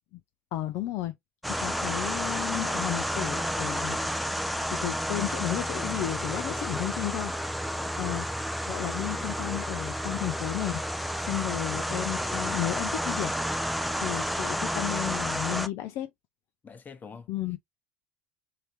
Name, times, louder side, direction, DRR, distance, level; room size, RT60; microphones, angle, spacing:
voice 1, 0.5-1.1 1.5-4.0 4.7-7.3 7.7-8.3 8.7-10.8 11.2-13.3 14.0-16.1 17.3-17.6, left 14 dB, 55° left, 0.4 m, -33 dB
sound 1, 1.4-15.7, equal, ahead, 0.5 m, -31 dB
voice 2, 6.6-7.0 7.7-8.0 9.1-9.4 16.6-17.6, left 5 dB, 30° left, 0.9 m, -46 dB
3.3 x 2.7 x 2.9 m
hypercardioid pair, 80°, 6 cm